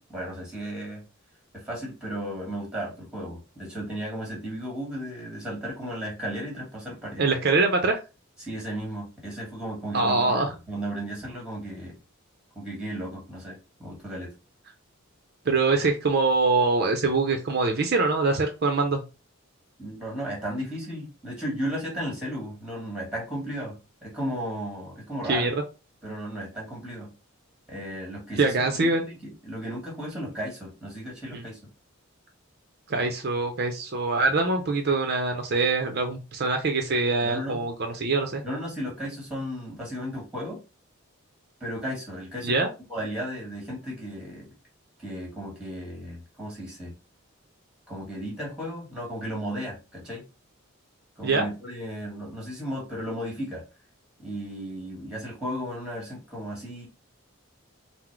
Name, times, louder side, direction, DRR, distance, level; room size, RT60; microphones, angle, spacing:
voice 1, 0.1-1.0 1.5-7.2 8.4-12.0 12.5-14.3 19.8-25.5 26.0-27.1 27.7-31.6 37.2-37.6 38.4-40.6 41.6-44.5 45.0-46.9 47.9-50.3 51.2-53.6 54.2-56.9, equal, 5° right, -2 dB, 1.5 m, -35 dB
voice 2, 7.2-8.0 9.9-10.5 15.5-19.0 25.3-25.6 28.4-29.0 31.3-31.4 32.9-38.4 42.4-42.7 51.2-51.5, right 3 dB, 50° right, 5 dB, 0.6 m, -24 dB
3.9 x 2.0 x 4.4 m, 0.30 s
head